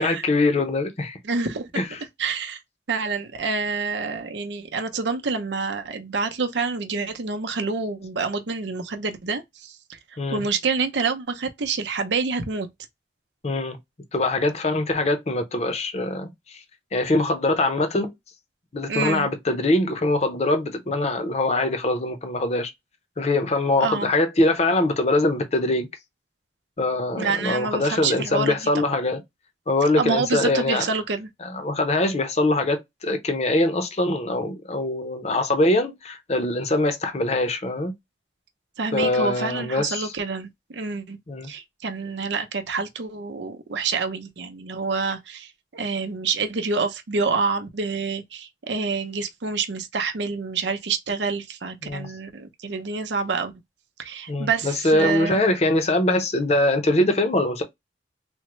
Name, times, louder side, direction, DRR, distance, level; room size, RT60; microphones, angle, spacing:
voice 1, 0.0-1.2 1.8-1.9 10.2-10.5 13.4-13.8 14.1-16.6 16.9-18.1 18.7-22.7 23.2-25.9 26.8-29.2 29.7-30.8 31.4-37.9 38.9-40.1 41.3-41.5 51.8-52.1 54.3-57.6, left 2 dB, 35° left, 0.7 m, -23 dB
voice 2, 1.2-1.7 2.2-2.6 2.9-10.0 10.3-12.7 18.9-19.3 23.8-24.1 27.2-28.6 30.0-31.3 38.8-41.2 41.5-53.5 54.0-55.4, right 4 dB, 90° right, 0.7 m, -27 dB
3.6 x 2.1 x 3.0 m
head